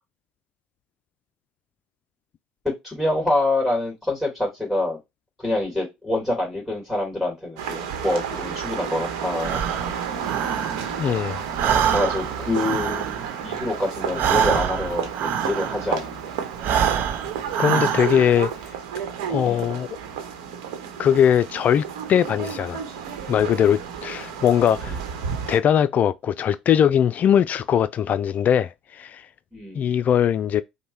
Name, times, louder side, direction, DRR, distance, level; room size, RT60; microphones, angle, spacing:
voice 1, 2.8-5.0 5.4-9.6 11.7-16.3 16.9-17.1 19.4-19.7 24.8-25.0 29.5-29.9, left 2 dB, 5° right, 2.8 m, -26 dB
sound 1, 7.6-25.6, right 7 dB, 70° right, 1.0 m, -32 dB
Breathing, 9.4-11.1 11.4-16.0 16.5-18.4, right 8 dB, 55° right, 0.7 m, -25 dB
voice 2, 11.0-11.4 17.6-18.5 19.3-20.0 21.0-22.8 23.3-25.0 25.5-29.3 29.8-30.6, left 9 dB, 40° left, 0.3 m, -20 dB
5.3 x 2.2 x 4.4 m
hypercardioid pair, 70°, 4 cm